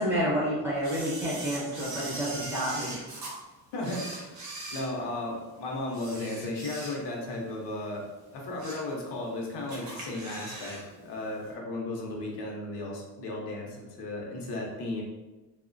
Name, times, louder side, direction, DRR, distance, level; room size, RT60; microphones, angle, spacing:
voice 1, 0.0-2.9, equal, 5° right, -10 dB, 0.7 m, -29 dB
Camera, 0.8-3.3 3.8-5.4 5.9-7.3 7.6-7.8 8.3-8.9 9.3-9.4 9.7-10.8 11.1-11.2, right 2 dB, 45° right, 0.7 m, -40 dB
voice 2, 3.7-4.3 4.7-8.1 8.3-15.0, left 2 dB, 75° left, -1 dB, 0.7 m, -35 dB
2.8 x 2.1 x 2.5 m, 1.1 s
cardioid pair, 175°, 41 cm